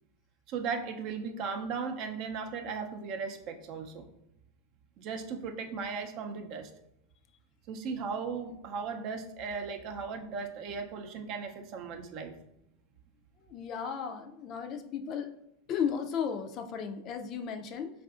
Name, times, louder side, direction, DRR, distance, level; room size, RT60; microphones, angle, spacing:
voice 1, 0.5-4.1 5.0-6.7 7.7-12.4, right 5 dB, 50° right, 5 dB, 0.5 m, -37 dB
voice 2, 13.4-15.3 15.7-17.9, left 7 dB, 45° left, 7 dB, 0.4 m, -34 dB
4.6 x 2.4 x 2.4 m, 0.81 s
hypercardioid pair, 105°, 0 cm